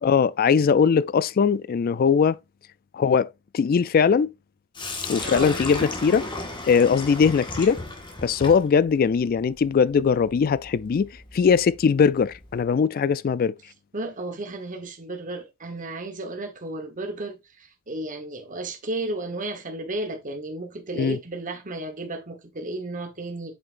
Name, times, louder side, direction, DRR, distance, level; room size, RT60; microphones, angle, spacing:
voice 1, 0.0-2.4 2.9-4.3 5.1-6.2 6.7-7.8 8.2-13.5 20.9-21.2, left 6 dB, 45° left, 0.3 m, -20 dB
Sink (filling or washing), 4.7-12.7, left 2 dB, 20° left, 1.6 m, -36 dB
voice 2, 5.2-5.6 13.9-23.6, right 2 dB, 35° right, 1.2 m, -33 dB
8.0 x 5.7 x 2.5 m
head